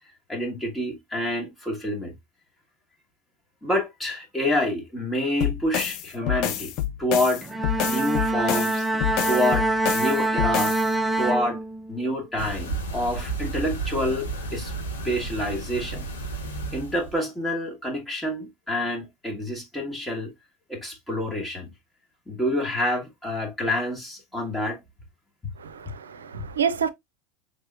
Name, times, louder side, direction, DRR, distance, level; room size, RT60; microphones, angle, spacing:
voice 1, 0.3-2.1 3.6-6.7 7.0-7.4 7.8-8.8 9.3-9.7 9.9-10.7 11.2-11.6 11.9-14.7 15.0-16.0 16.7-20.3 20.7-21.7 22.3-24.8, left 1 dB, 10° left, 1.5 m, -27 dB
sound 1, 5.4-10.9, left 11 dB, 50° left, 0.6 m, -28 dB
Bowed string instrument, 7.4-12.1, right 2 dB, 15° right, 0.5 m, -25 dB
sound 2, 12.4-17.2, right 3 dB, 85° left, 1.1 m, -32 dB
voice 2, 25.6-26.9, right 7 dB, 75° right, 0.5 m, -28 dB
5.4 x 3.6 x 2.5 m
figure-of-eight pair, 80°, 0 cm